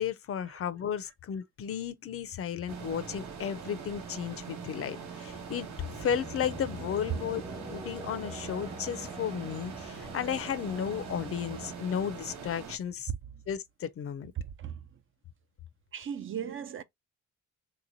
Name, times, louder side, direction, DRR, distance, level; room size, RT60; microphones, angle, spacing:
voice 1, 0.0-5.7 6.0-7.4 7.7-13.1 13.5-14.3, left 8 dB, 50° left, 0.5 m, -34 dB
sound 1, 2.7-12.8, right 6 dB, 65° right, 1.1 m, -42 dB
sound 2, 5.9-11.7, right 1 dB, 20° right, 0.8 m, -45 dB
voice 2, 15.9-16.8, right 8 dB, 45° right, 0.5 m, -36 dB
3.4 x 3.0 x 2.5 m
cardioid pair, 90°, 30 cm